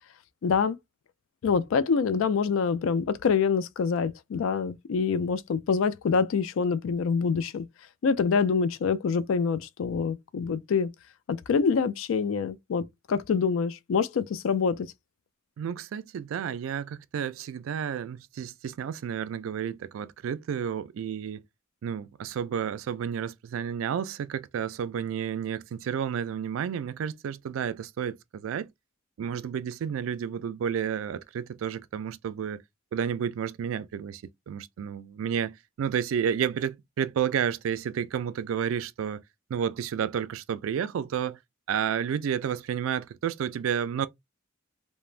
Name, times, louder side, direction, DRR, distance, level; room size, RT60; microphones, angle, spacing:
voice 1, 0.4-0.8 1.4-7.7 8.0-10.9 11.3-14.9, left 5 dB, 80° left, 0.4 m, -26 dB
voice 2, 15.6-21.4 21.8-28.7 29.2-32.6 32.9-39.2 39.5-41.4 41.7-44.1, right 8 dB, 85° right, 0.3 m, -31 dB
3.1 x 2.1 x 2.4 m
head